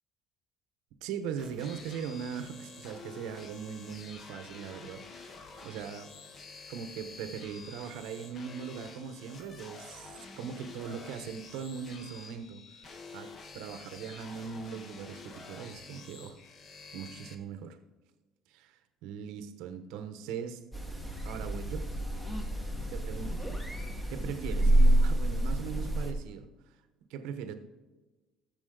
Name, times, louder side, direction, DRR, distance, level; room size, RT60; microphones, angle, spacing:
voice 1, 1.0-6.1 6.7-16.4 16.9-17.8 18.5-20.6 21.2-21.9 22.9-23.3 24.1-26.5 27.1-27.5, right 7 dB, 90° right, 9 dB, 1.1 m, -40 dB
sound 1, 1.4-17.3, left 4 dB, 35° left, 1.2 m, -49 dB
sound 2, 20.7-26.1, right 1 dB, 5° left, 1.5 m, -28 dB
14.5 x 6.9 x 3.9 m, 1.2 s
cardioid pair, 150°, 0 cm